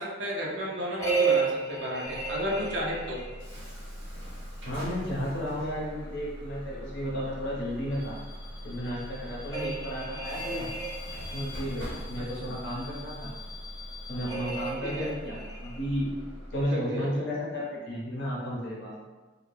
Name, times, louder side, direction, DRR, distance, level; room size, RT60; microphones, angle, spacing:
voice 1, 0.0-3.2 12.4-12.6 14.8-15.1 16.7-17.1, equal, 65° right, -3 dB, 0.5 m, -33 dB
sound 1, 1.0-3.5 9.5-11.6 14.3-15.8, right 5 dB, 15° left, 0.5 m, -32 dB
Bus / Alarm, 2.0-16.6, left 1 dB, 90° right, 1.0 m, -41 dB
voice 2, 4.6-8.2 8.6-10.7 11.3-13.3 14.1-16.1 16.5-18.9, equal, 65° left, -5 dB, 0.8 m, -33 dB
2.2 x 2.1 x 3.1 m, 1.2 s
head